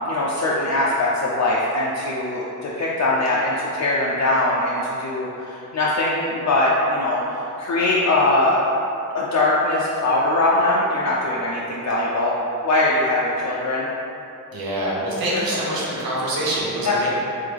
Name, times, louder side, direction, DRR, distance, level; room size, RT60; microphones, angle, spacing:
voice 1, 0.1-8.6 9.1-12.3 12.6-13.9 15.3-15.4 16.8-17.1, left 2 dB, 50° left, -5 dB, 0.5 m, -21 dB
voice 2, 14.5-17.1, right 1 dB, 80° right, -5 dB, 0.9 m, -25 dB
3.7 x 3.3 x 3.3 m, 2.9 s
cardioid pair, 80°, 35 cm